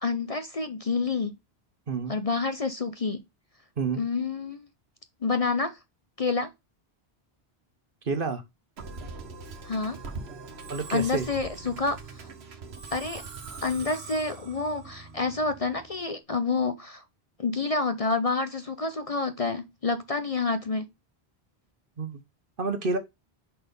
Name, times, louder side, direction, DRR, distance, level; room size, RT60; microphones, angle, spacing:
voice 1, 0.0-1.3 2.1-3.2 4.0-4.6 5.2-5.8 6.2-6.5 9.7-10.0 10.9-12.3 12.9-13.2 13.6-17.0 17.4-20.9, left 4 dB, 40° left, 0.6 m, -28 dB
voice 2, 1.9-2.2 3.8-4.0 8.0-8.4 10.7-11.3 22.0-22.2 22.6-23.0, right 4 dB, 55° right, 1.2 m, -29 dB
Musical instrument, 8.8-16.1, right 4 dB, 75° right, 1.4 m, -42 dB
5.7 x 4.2 x 5.2 m
omnidirectional pair, 1.1 m